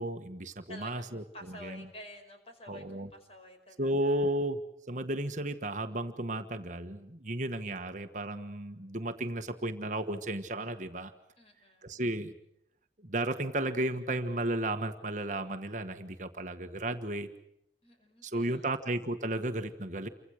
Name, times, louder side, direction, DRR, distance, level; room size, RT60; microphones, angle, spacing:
voice 1, 0.0-1.9 2.7-3.1 3.8-4.6 4.9-11.1 11.8-12.3 13.0-17.3 18.2-20.1, right 1 dB, 40° right, 6 dB, 1.4 m, -34 dB
voice 2, 0.7-4.3 11.4-12.0 17.8-18.8, left 1 dB, 35° left, 5 dB, 5.3 m, -50 dB
28.5 x 25.0 x 6.4 m, 0.78 s
head